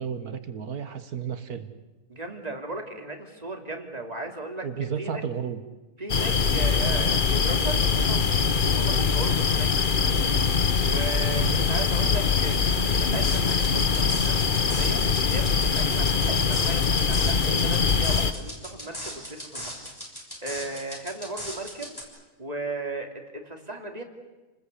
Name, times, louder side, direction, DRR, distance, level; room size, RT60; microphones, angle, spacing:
voice 1, 0.0-1.7 4.6-5.6 11.4-11.7, right 7 dB, 80° right, 10 dB, 2.0 m, -32 dB
voice 2, 2.1-5.2 6.0-10.4 10.8-12.6 13.0-15.0 15.3-19.8 20.4-22.0 22.4-24.0, right 2 dB, 25° right, 3 dB, 3.0 m, -36 dB
sound 1, 6.1-18.3, left 5 dB, 35° left, 1.1 m, -23 dB
sound 2, 13.2-22.0, equal, 15° left, 6.4 m, -39 dB
29.5 x 20.0 x 8.4 m, 1.2 s
omnidirectional pair, 1.6 m